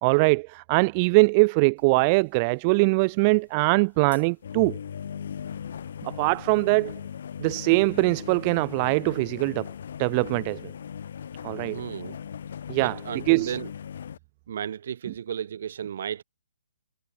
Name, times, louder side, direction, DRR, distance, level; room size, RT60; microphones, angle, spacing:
voice 1, 0.0-4.8 6.0-6.9 7.4-9.7 10.0-10.7 11.4-11.8 12.7-13.0 13.3-13.6, right 29 dB, 30° right, 1.1 m, -22 dB
sound 1, 1.8-1.9 2.4-2.5 3.1-3.2 3.7-14.2, left 8 dB, 55° left, 2.3 m, -38 dB
voice 2, 11.6-12.2 12.8-13.7 14.5-16.2, right 8 dB, 50° right, 3.8 m, -34 dB
figure-of-eight pair, 135°, 0 cm